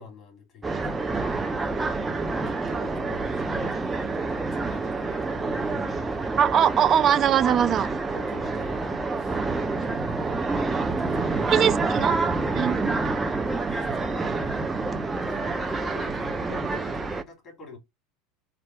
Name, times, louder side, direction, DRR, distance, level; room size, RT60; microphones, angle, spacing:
voice 1, 0.0-1.4 2.4-6.6 8.1-10.4 10.8-12.2 13.4-14.6 15.2-17.8, left 4 dB, 30° left, 3.0 m, -45 dB
sound 1, 0.6-17.2, right 3 dB, 15° right, 0.7 m, -28 dB
voice 2, 6.4-7.9 11.5-12.2 12.6-12.8, right 9 dB, 40° right, 0.4 m, -21 dB
4.3 x 2.5 x 4.7 m
hypercardioid pair, 85°, 0 cm